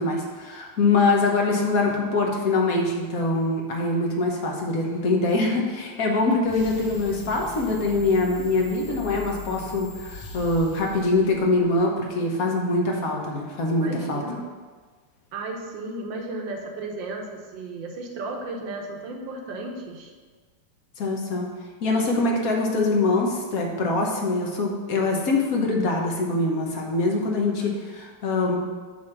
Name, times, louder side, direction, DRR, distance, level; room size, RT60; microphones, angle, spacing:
voice 1, 0.0-14.2 21.0-21.5 21.8-28.6, left 2 dB, 50° left, 0 dB, 1.3 m, -24 dB
sound 1, 6.4-11.9, left 4 dB, 70° left, 1.8 m, -40 dB
voice 2, 13.8-14.4 15.3-20.1 27.5-27.8, right 2 dB, 65° right, 2 dB, 1.5 m, -34 dB
8.6 x 3.5 x 5.9 m, 1.5 s
omnidirectional pair, 2.4 m